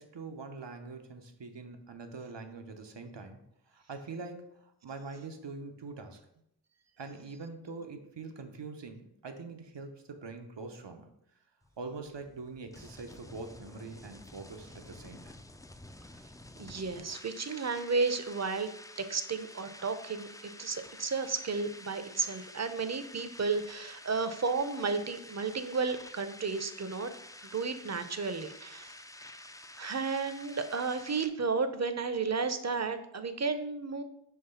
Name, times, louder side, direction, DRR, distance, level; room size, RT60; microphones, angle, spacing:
voice 1, 0.0-3.4 3.7-6.2 7.0-11.1 11.8-15.4, right 3 dB, 85° right, 6 dB, 0.8 m, -44 dB
sound 1, 11.6-31.3, left 1 dB, 10° left, 0.3 m, -50 dB
voice 2, 16.6-18.7 19.1-27.1 27.4-29.0 29.8-34.0, right 4 dB, 40° right, 10 dB, 0.6 m, -33 dB
5.7 x 3.1 x 5.6 m, 0.76 s
wide cardioid pair, 55°, 42 cm